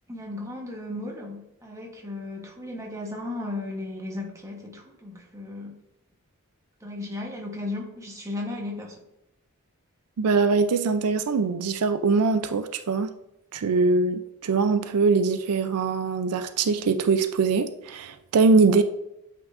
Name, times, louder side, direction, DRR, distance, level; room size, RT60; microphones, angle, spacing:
voice 1, 0.1-5.8 6.8-9.0, left 2 dB, 15° right, -1 dB, 1.1 m, -35 dB
voice 2, 10.2-13.1 13.5-18.8, right 4 dB, 80° right, 9 dB, 0.4 m, -22 dB
8.5 x 4.4 x 2.5 m, 0.87 s
head